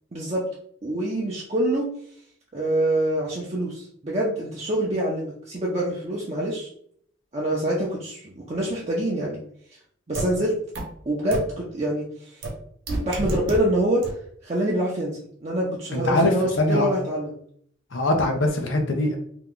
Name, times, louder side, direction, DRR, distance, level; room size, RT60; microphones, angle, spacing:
voice 1, 0.1-0.4 0.8-1.9 2.5-6.7 7.3-9.4 10.1-10.6 11.1-12.1 13.0-14.0 14.4-17.3, right 1 dB, 35° right, -5 dB, 0.5 m, -25 dB
sound 1, 10.1-10.2 10.7-10.8 11.3-11.4 12.4-12.5 12.9-13.6 14.0-14.1, right 2 dB, 75° right, 0.9 m, -28 dB
voice 2, 15.9-16.9 17.9-19.2, left 1 dB, 75° left, 3 dB, 0.7 m, -22 dB
2.8 x 2.3 x 3.8 m, 0.64 s
head